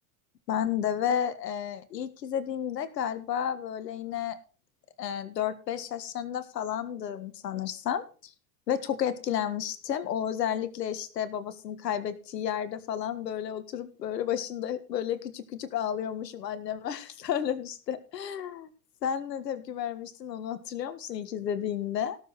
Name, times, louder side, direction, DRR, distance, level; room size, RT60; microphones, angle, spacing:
voice 1, 0.5-4.4 5.0-8.3 8.7-18.7 19.0-22.2, left 9 dB, 85° left, 12 dB, 1.7 m, -32 dB
17.5 x 7.2 x 4.2 m, 0.35 s
hypercardioid pair, 85°, 48 cm